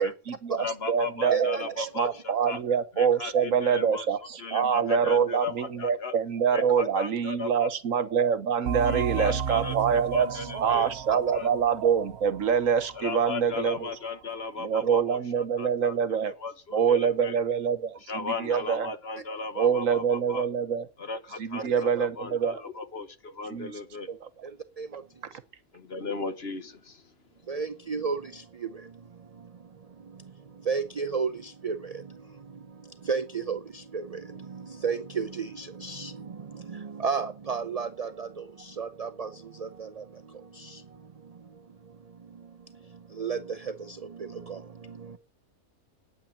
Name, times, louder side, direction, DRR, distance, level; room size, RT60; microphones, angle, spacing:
voice 1, 0.0-13.9 14.6-16.3 16.7-19.0 19.6-20.9 21.4-22.6 23.5-23.7 24.1-24.2, right 7 dB, 65° right, 1.4 m, -25 dB
voice 2, 0.6-2.6 2.9-4.1 4.4-6.1 6.5-7.7 8.8-11.5 12.9-15.2 15.6-17.4 18.1-20.5 21.0-24.1 25.7-27.1, left 4 dB, 50° left, 1.4 m, -36 dB
voice 3, 1.3-1.9 10.5-10.9 21.8-21.9 24.8-25.0 27.5-28.9 30.1-30.2 30.6-40.8 43.1-45.2, right 5 dB, 40° right, 0.5 m, -34 dB
sound 1, 8.6-13.9, right 7 dB, 85° right, 1.3 m, -35 dB
9.5 x 9.0 x 8.5 m
omnidirectional pair, 1.5 m